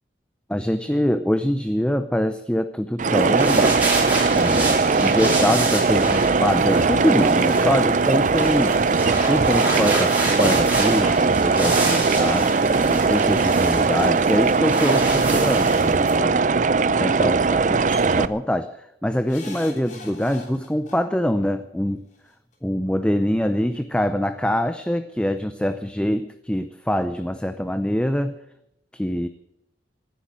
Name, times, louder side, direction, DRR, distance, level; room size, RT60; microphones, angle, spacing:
voice 1, 0.5-3.7 4.3-8.8 9.3-16.4 16.9-18.8 19.0-22.0 22.6-28.4 28.9-29.3, equal, 5° left, 10 dB, 0.6 m, -24 dB
sound 1, 3.0-16.2, right 2 dB, 10° right, 4.6 m, -29 dB
sound 2, 3.0-18.3, right 4 dB, 45° right, 0.5 m, -20 dB
sound 3, 17.9-18.2 19.3-21.0 22.2-22.3 22.5-22.6, left 2 dB, 45° left, 3.2 m, -40 dB
16.5 x 9.9 x 8.7 m, 0.82 s
head